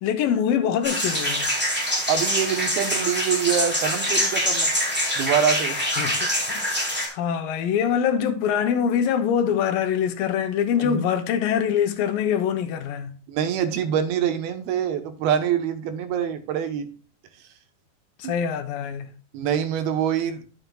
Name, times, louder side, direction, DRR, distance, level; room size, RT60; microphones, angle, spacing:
voice 1, 0.0-1.5 6.0-13.2 18.2-19.2, left 8 dB, 75° left, 2.4 m, -24 dB
sound 1, 0.8-7.1, equal, 5° right, 2.8 m, -24 dB
voice 2, 2.1-4.7 5.2-5.8 10.8-11.1 13.3-16.9 18.2-18.3 19.3-20.4, right 8 dB, 90° right, 3.0 m, -25 dB
12.0 x 7.7 x 2.3 m
omnidirectional pair, 4.3 m